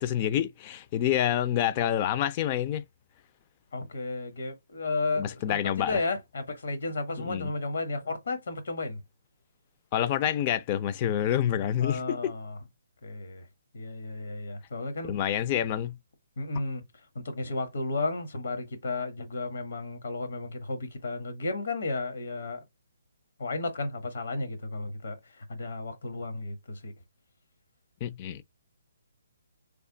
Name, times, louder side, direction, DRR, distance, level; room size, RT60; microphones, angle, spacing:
voice 1, 0.0-2.8 5.2-6.0 7.2-7.5 9.9-12.3 15.0-16.0 28.0-28.4, left 10 dB, 30° left, 0.4 m, -27 dB
voice 2, 3.7-9.0 11.8-12.6 13.0-13.5 13.7-15.1 16.4-16.8 17.1-22.6 23.4-26.9, left 3 dB, 75° left, 1.3 m, -33 dB
3.4 x 2.2 x 3.8 m
hypercardioid pair, 155°, 0 cm